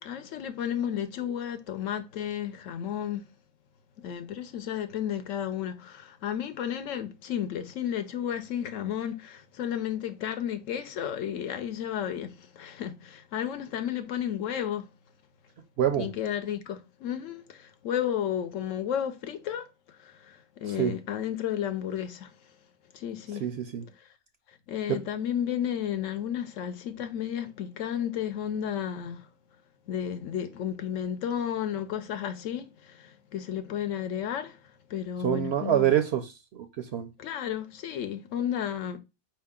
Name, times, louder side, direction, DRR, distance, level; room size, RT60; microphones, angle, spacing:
voice 1, 0.0-3.2 4.0-14.9 16.0-22.5 22.9-23.5 24.0-24.1 24.7-29.3 29.9-35.9 37.2-39.0, left 9 dB, 70° left, 1.0 m, -33 dB
voice 2, 15.8-16.1 20.8-20.9 23.4-23.8 24.9-25.0 35.2-37.1, right 10 dB, 65° right, 0.7 m, -26 dB
4.7 x 2.8 x 3.5 m
omnidirectional pair, 1.4 m